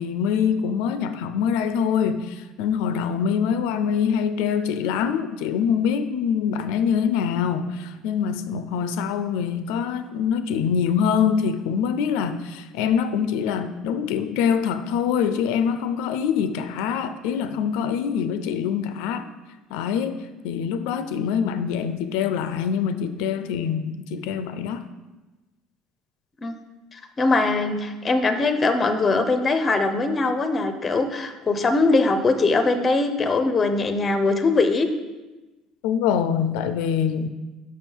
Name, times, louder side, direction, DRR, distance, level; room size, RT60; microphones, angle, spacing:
voice 1, 0.0-19.3 19.7-24.9 35.8-37.3, left 7 dB, 90° left, 11 dB, 0.4 m, -24 dB
voice 2, 27.2-34.9, left 3 dB, 20° left, 8 dB, 0.5 m, -21 dB
5.8 x 5.4 x 4.5 m, 1.1 s
cardioid pair, 155°, 0 cm